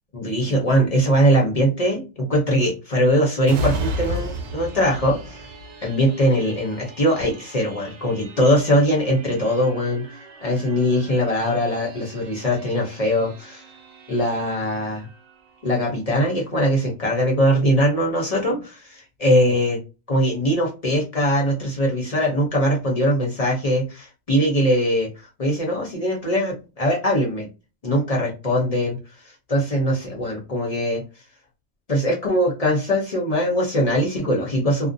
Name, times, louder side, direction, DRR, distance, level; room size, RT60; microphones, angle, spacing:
voice 1, 0.1-5.4 5.8-10.1 10.4-13.6 14.1-15.1 15.6-19.8 20.1-25.1 25.4-27.5 27.8-29.0 29.5-31.0 31.9-34.9, equal, 40° left, -1 dB, 0.7 m, -21 dB
sound 1, 3.4-16.8 17.2-17.4, right 1 dB, 85° right, 0.9 m, -36 dB
2.5 x 2.1 x 2.6 m, 0.30 s
omnidirectional pair, 1.2 m